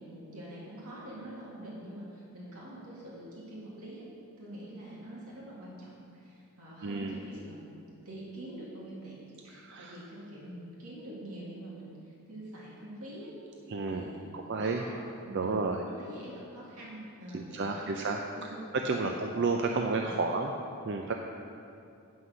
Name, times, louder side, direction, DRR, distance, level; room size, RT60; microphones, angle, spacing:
voice 1, 0.0-4.0 4.4-7.8 8.1-9.2 9.4-13.3 13.9-18.1 18.3-18.6 19.6-20.4, right 1 dB, 85° right, -6 dB, 2.1 m, -45 dB
voice 2, 6.8-7.2 9.5-10.0 13.7-14.8 15.3-15.8 17.3-20.5 20.9-21.1, right 3 dB, 50° right, 3 dB, 0.5 m, -31 dB
9.5 x 5.9 x 6.3 m, 2.6 s
head